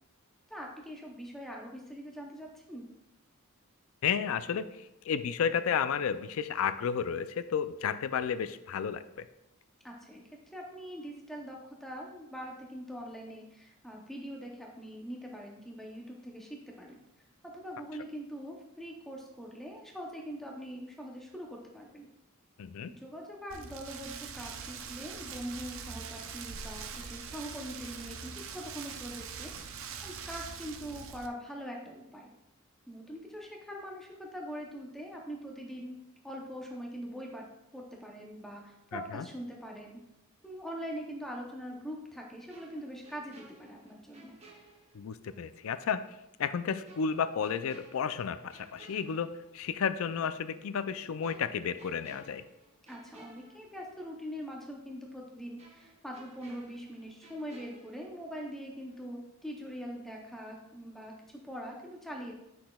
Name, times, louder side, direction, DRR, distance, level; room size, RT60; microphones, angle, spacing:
voice 1, 0.5-2.8 9.8-17.0 17.4-22.1 22.9-32.3 32.9-36.0 36.2-37.5 37.7-40.0 40.4-44.4 52.9-62.3, equal, ahead, -1 dB, 0.6 m, -43 dB
voice 2, 4.0-9.3 22.6-22.9 38.9-39.2 44.9-52.4, left 7 dB, 65° left, 12 dB, 0.4 m, -32 dB
Rain, 23.5-31.3, right 6 dB, 60° right, 0.5 m, -43 dB
sound 1, 42.5-45.4 45.8-45.9 46.9-49.8 50.1-50.3 51.2-54.2 54.5-54.6 55.6-58.6 58.9-59.1, right 2 dB, 30° right, 0.9 m, -57 dB
8.5 x 5.9 x 2.3 m, 0.87 s
head